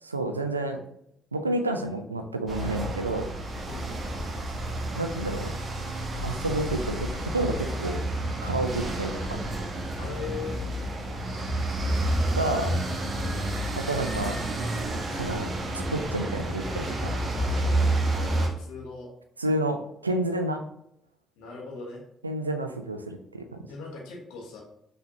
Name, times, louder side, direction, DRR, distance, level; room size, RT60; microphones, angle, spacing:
voice 1, 0.1-0.8 1.3-3.3 5.0-5.6 6.2-8.0 8.4-9.5 12.3-12.8 13.8-14.4 15.1-17.1 19.4-20.6 22.2-23.6, right 2 dB, 90° right, 6 dB, 0.3 m, -30 dB
sound 1, 2.5-18.5, right 1 dB, 40° right, 1.0 m, -30 dB
voice 2, 10.0-10.7 13.2-13.7 17.4-19.1 21.4-22.0 23.7-24.6, left 4 dB, 65° left, -1 dB, 1.2 m, -40 dB
5.8 x 3.3 x 2.8 m, 0.78 s
figure-of-eight pair, 45°, 0 cm